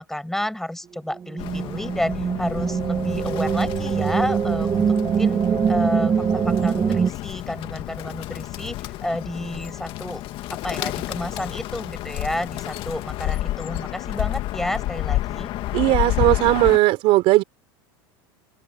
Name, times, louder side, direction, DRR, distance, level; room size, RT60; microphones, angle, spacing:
voice 1, 0.0-5.4 5.7-8.8 9.0-10.2 10.5-15.5, left 1 dB, 5° left, 6.7 m, -30 dB
sound 1, 1.1-7.1, right 7 dB, 25° right, 1.3 m, -23 dB
Bird, 1.4-16.8, left 15 dB, 50° left, 2.0 m, -30 dB
voice 2, 15.7-17.4, right 19 dB, 55° right, 3.8 m, -17 dB
supercardioid pair, 115°, 12 cm